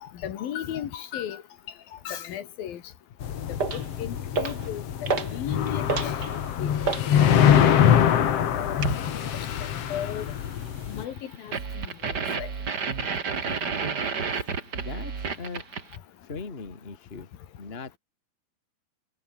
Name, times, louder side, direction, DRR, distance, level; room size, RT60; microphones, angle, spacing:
voice 1, 0.0-1.4 2.1-2.8 3.7-6.2 6.6-6.7 7.8-8.0 8.4-8.8 9.3-10.3 10.9-12.5, left 10 dB, 85° left, 3.8 m, -36 dB
sound 1, 3.2-11.1, left 9 dB, 50° left, 2.2 m, -24 dB
sound 2, 3.6-3.9 4.3-4.7 5.1-5.4 5.7-7.1 8.8-9.1 11.5-16.0, right 5 dB, 35° right, 2.3 m, -30 dB
voice 2, 14.7-15.1 15.4-15.6 16.2-17.3 17.6-18.0, left 4 dB, 20° left, 2.4 m, -38 dB
omnidirectional pair, 4.0 m